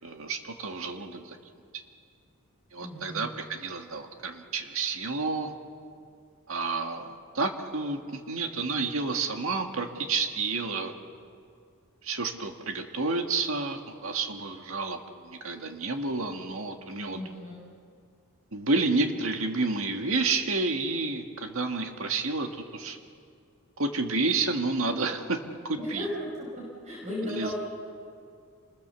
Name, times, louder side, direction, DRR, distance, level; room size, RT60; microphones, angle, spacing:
voice 1, 0.0-1.4 2.7-5.5 6.5-10.9 12.0-17.2 18.5-23.0 23.8-26.1 27.2-27.5, right 3 dB, 70° right, 4 dB, 1.9 m, -30 dB
voice 2, 2.8-3.4 17.1-17.6 25.8-27.5, equal, 30° right, -5 dB, 5.5 m, -36 dB
27.5 x 21.0 x 6.9 m, 2.4 s
head